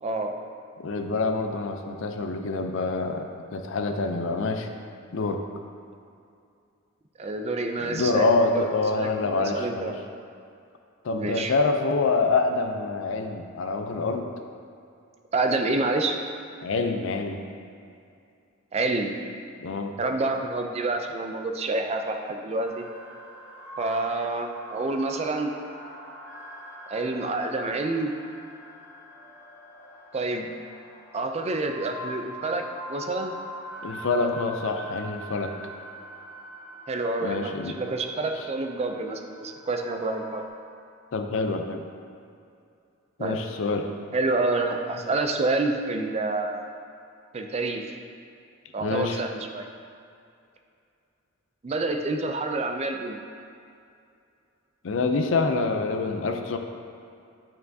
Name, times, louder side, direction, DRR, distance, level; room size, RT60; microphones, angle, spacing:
voice 1, 0.0-0.3 7.2-9.1 9.4-9.9 11.1-11.5 15.3-16.2 18.7-19.2 20.0-22.9 23.8-25.5 26.9-28.1 30.1-30.5 31.1-33.3 36.9-40.4 43.2-43.4 44.1-46.6 47.3-47.9 48.7-49.7 51.6-53.2, right 2 dB, 30° right, 4 dB, 0.4 m, -28 dB
voice 2, 0.8-4.7 5.1-5.4 7.8-9.9 11.0-14.3 16.6-17.4 19.6-19.9 33.8-35.5 37.2-37.8 41.1-41.9 43.2-43.9 48.8-49.2 54.8-56.6, left 3 dB, 65° left, 5 dB, 0.5 m, -26 dB
sound 1, 22.6-40.5, equal, 10° right, 0.8 m, -43 dB
8.6 x 4.5 x 2.7 m, 2.5 s
head